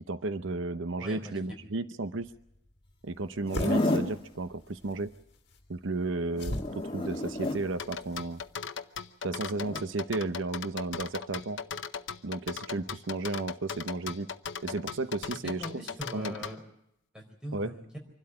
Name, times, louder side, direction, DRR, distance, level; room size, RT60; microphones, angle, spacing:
voice 1, 0.0-2.3 3.0-5.1 5.7-8.4 9.2-11.6 12.2-14.3 14.6-15.8 16.1-16.3 17.5-17.7, right 2 dB, 80° right, 12 dB, 0.8 m, -33 dB
voice 2, 1.0-1.3 15.6-16.6 17.1-18.0, equal, 5° right, 1 dB, 4.5 m, -41 dB
sound 1, 2.2-8.5, left 1 dB, 55° left, 2.1 m, -42 dB
Zipper (clothing), 3.4-4.2 6.3-7.6 9.5-9.8, left 1 dB, 25° left, 2.1 m, -31 dB
sound 2, 7.8-16.6, left 6 dB, 70° left, 0.8 m, -38 dB
25.5 x 12.5 x 9.8 m, 0.79 s
head